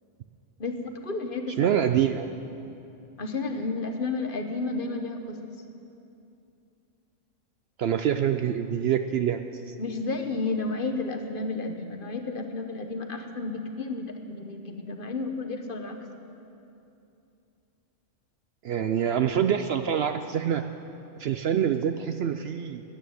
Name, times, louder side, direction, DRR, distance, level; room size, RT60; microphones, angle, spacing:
voice 1, 0.6-1.8 3.2-5.4 9.8-16.0, left 3 dB, 45° left, 5 dB, 1.1 m, -32 dB
voice 2, 1.6-2.3 7.8-9.4 9.7-9.8 18.6-20.6 21.2-22.8, right 9 dB, 65° right, 8 dB, 0.7 m, -25 dB
12.5 x 9.5 x 9.5 m, 2.7 s
omnidirectional pair, 1.3 m